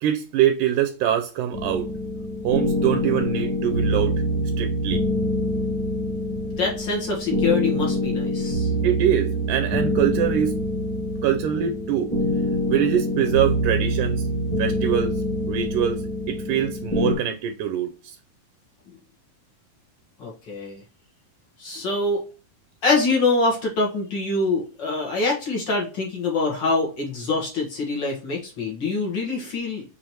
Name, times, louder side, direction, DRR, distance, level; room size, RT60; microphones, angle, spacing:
voice 1, 0.0-1.9 2.4-4.1 4.6-5.0 8.8-10.6 11.2-12.1 12.7-14.3 14.6-15.2 15.5-18.2, right 10 dB, 80° right, 2.0 m, -24 dB
sound 1, 1.5-17.2, equal, 5° left, 0.5 m, -25 dB
voice 2, 6.6-8.7 20.2-20.8 21.6-22.2 22.8-29.8, left 3 dB, 65° left, 1.1 m, -25 dB
6.2 x 2.8 x 2.8 m
omnidirectional pair, 3.7 m